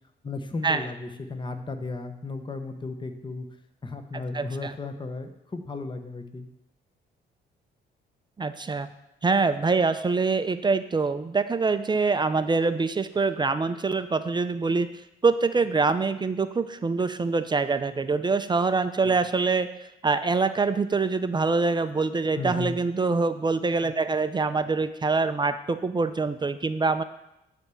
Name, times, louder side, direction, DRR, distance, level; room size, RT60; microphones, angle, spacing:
voice 1, 0.2-3.5 3.8-6.5 19.0-19.2 22.3-22.8, left 3 dB, 25° left, 7 dB, 0.9 m, -34 dB
voice 2, 4.1-4.7 8.4-8.9 9.2-14.9 15.2-19.7 20.0-27.0, right 4 dB, 20° right, 11 dB, 0.5 m, -25 dB
10.0 x 3.4 x 6.9 m, 0.87 s
cardioid pair, 90°, 20 cm